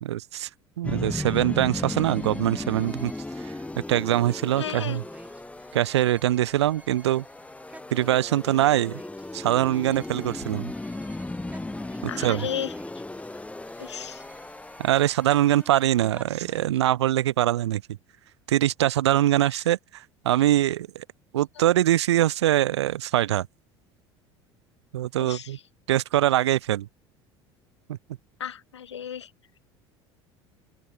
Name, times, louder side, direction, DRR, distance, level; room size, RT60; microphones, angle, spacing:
voice 1, 0.0-0.5 0.8-3.1 3.4-3.5 3.9-5.0 5.7-7.2 7.9-9.0 9.3-10.7 12.2-12.5 14.8-17.8 18.5-21.0 21.3-23.5 24.9-25.6 25.9-26.9 27.9-28.0, right 13 dB, 75° right, 0.4 m, -23 dB
sound 1, 0.8-16.1, left 2 dB, 10° left, 2.0 m, -36 dB
sound 2, 1.1-16.8, right 2 dB, 10° right, 7.5 m, -51 dB
voice 2, 4.6-5.0 12.1-12.7 13.8-14.2 19.5-19.6 21.6-21.7 25.2-25.6 28.4-29.3, left 9 dB, 80° left, 0.7 m, -34 dB
open air
figure-of-eight pair, 65°, 15 cm